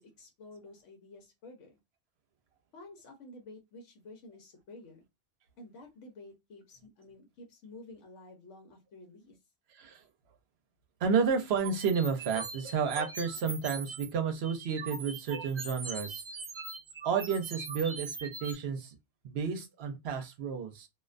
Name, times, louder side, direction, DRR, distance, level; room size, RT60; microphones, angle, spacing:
voice 1, 0.0-1.8 2.7-5.0 5.6-9.4, left 2 dB, 85° left, 1.0 m, -51 dB
voice 2, 9.7-10.0 11.0-16.2 17.0-18.9 19.2-20.9, right 6 dB, 65° right, 0.8 m, -31 dB
sound 1, 11.6-14.1 14.4-18.5, right 4 dB, 40° right, 0.5 m, -41 dB
2.4 x 2.1 x 2.4 m
omnidirectional pair, 1.2 m